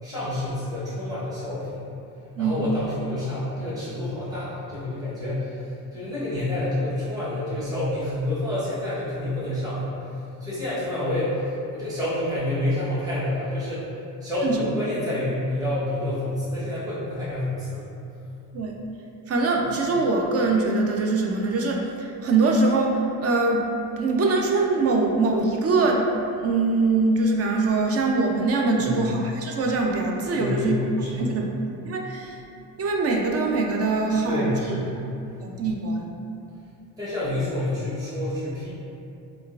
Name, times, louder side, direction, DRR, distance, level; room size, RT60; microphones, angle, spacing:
voice 1, 0.0-1.8 2.4-13.9 14.2-17.9 28.8-29.2 30.4-31.3 34.2-34.9 35.2-35.4 37.0-38.7, left 1 dB, 10° right, -11 dB, 1.1 m, -28 dB
voice 2, 19.3-23.7 24.0-30.8 31.1-31.5 31.9-32.4 32.8-34.5 35.4-36.1, right 3 dB, 40° right, 1 dB, 0.5 m, -23 dB
3.6 x 2.4 x 2.4 m, 2.6 s
supercardioid pair, 80°, 40 cm